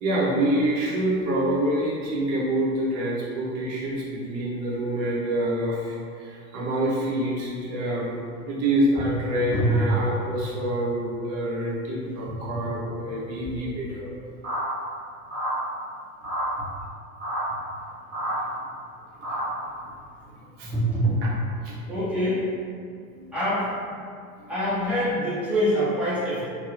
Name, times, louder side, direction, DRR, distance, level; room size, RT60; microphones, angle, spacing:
voice 1, 0.0-8.2 8.5-14.1 16.6-16.7 20.6-20.7 21.2-21.3 21.6-21.8 23.1-23.2 24.4-24.5, right 1 dB, 40° right, -5 dB, 0.7 m, -26 dB
sound 1, 14.4-14.6 15.3-15.5 16.2-16.5 17.2-17.4 18.1-18.4 19.2-19.5, equal, 20° right, 1.1 m, -29 dB
voice 2, 20.6-21.1 21.8-22.5 23.3-23.7 24.5-26.4, equal, 5° right, -11 dB, 0.7 m, -25 dB
2.6 x 2.0 x 2.4 m, 2.3 s
figure-of-eight pair, 80°, 45 cm